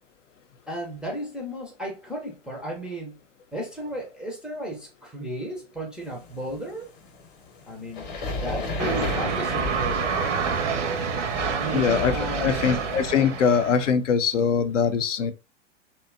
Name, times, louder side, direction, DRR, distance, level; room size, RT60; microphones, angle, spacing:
voice 1, 0.7-3.2 3.5-6.9 7.6-10.2 11.5-12.7, right 1 dB, 5° right, 0.3 m, -34 dB
sound 1, 6.0-13.1, left 2 dB, 25° left, 0.7 m, -34 dB
sound 2, 8.8-13.9, right 6 dB, 75° right, 0.6 m, -28 dB
voice 2, 11.7-15.3, left 6 dB, 80° left, 0.5 m, -22 dB
2.6 x 2.2 x 2.4 m
hypercardioid pair, 105°, 36 cm